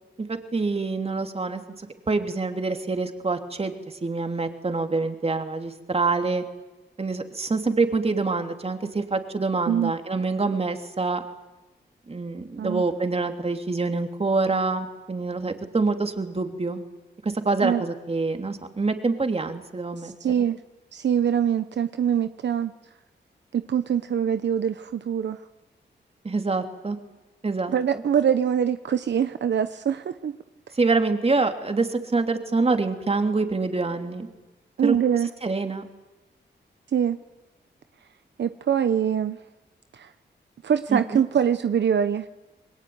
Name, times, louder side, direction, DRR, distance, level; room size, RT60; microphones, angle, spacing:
voice 1, 0.2-6.4 7.0-11.2 12.1-16.8 17.2-20.1 26.2-27.0 27.4-28.0 30.7-34.3 34.8-35.0 35.4-35.9 40.9-41.2, right 3 dB, 35° right, 6 dB, 3.2 m, -26 dB
voice 2, 20.0-20.6 20.9-22.7 23.5-25.4 27.7-30.3 34.8-35.3 36.9-37.2 38.4-39.4 39.9-40.1 40.6-42.3, right 8 dB, 70° right, 11 dB, 1.0 m, -24 dB
28.0 x 22.0 x 9.7 m, 1.1 s
cardioid pair, 90°, 19 cm